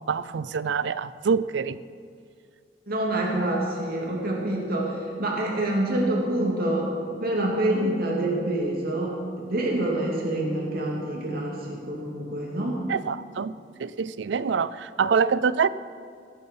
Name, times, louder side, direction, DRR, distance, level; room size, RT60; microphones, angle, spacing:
voice 1, 0.1-1.8 12.9-15.7, right 6 dB, 70° right, 17 dB, 0.4 m, -25 dB
voice 2, 2.9-6.9 7.2-12.8, right 1 dB, 55° right, -2 dB, 2.7 m, -26 dB
19.0 x 8.2 x 5.5 m, 2.3 s
head